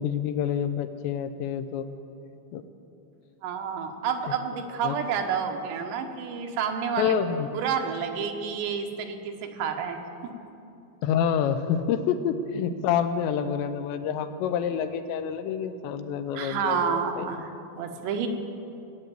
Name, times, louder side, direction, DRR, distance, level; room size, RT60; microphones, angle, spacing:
voice 1, 0.0-1.9 2.5-2.6 4.8-5.0 7.0-7.5 11.0-17.3, left 8 dB, 80° left, 9 dB, 2.9 m, -27 dB
voice 2, 3.4-7.2 7.5-10.3 16.3-17.5 17.8-18.3, right 7 dB, 75° right, 5 dB, 3.0 m, -29 dB
18.5 x 8.1 x 9.0 m, 2.8 s
omnidirectional pair, 5.2 m